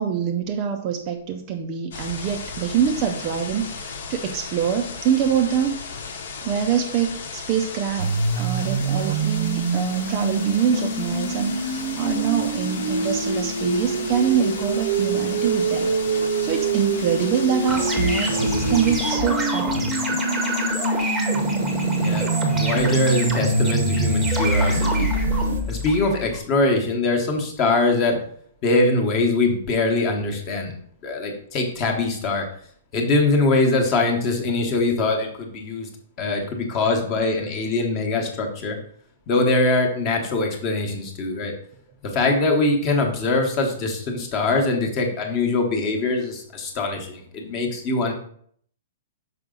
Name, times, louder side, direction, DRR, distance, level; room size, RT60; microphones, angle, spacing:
voice 1, 0.0-5.8 6.4-15.9 16.2-19.9, right 8 dB, 25° right, 5 dB, 0.4 m, -25 dB
sound 1, 1.9-19.2, left 5 dB, 60° left, 1.0 m, -35 dB
sound 2, 8.0-25.6, right 3 dB, 65° right, 0.7 m, -25 dB
sound 3, 17.7-26.4, right 1 dB, 5° right, 0.8 m, -27 dB
voice 2, 22.0-25.1 25.7-28.2 28.6-30.7 31.0-32.5 32.9-35.9 36.2-38.8 39.3-41.5 42.0-48.1, left 3 dB, 20° left, 3 dB, 0.9 m, -22 dB
6.0 x 4.8 x 3.7 m, 0.62 s
hypercardioid pair, 180°, 0 cm